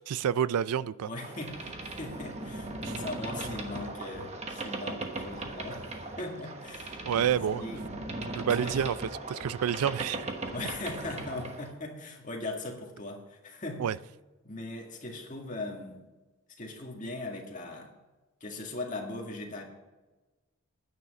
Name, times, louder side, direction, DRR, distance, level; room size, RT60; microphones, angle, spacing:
voice 1, 0.0-1.1 2.8-2.9 7.0-7.6 8.3-9.0 9.3-10.3 13.8-14.0, right 8 dB, 85° right, 0.4 m, -28 dB
voice 2, 1.1-5.9 6.2-7.8 8.6-8.8 10.5-13.8 14.4-16.0 16.6-17.9 18.4-19.6, left 2 dB, 35° left, 1.9 m, -39 dB
Boat Water vehicle, 1.2-11.7, right 2 dB, 30° right, 1.2 m, -38 dB
9.7 x 9.7 x 5.3 m
head